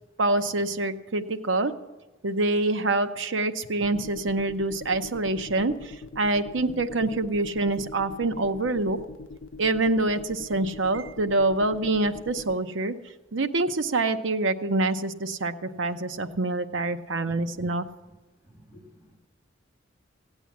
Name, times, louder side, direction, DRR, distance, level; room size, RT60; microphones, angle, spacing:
voice 1, 0.2-1.7 2.2-9.0 9.6-12.9 13.3-17.9, right 2 dB, 75° right, 9 dB, 0.8 m, -26 dB
sound 1, 3.8-12.6, left 3 dB, 85° left, 0.6 m, -42 dB
voice 2, 18.5-19.2, left 1 dB, 20° right, -1 dB, 2.7 m, -52 dB
16.5 x 8.9 x 7.2 m, 1.1 s
head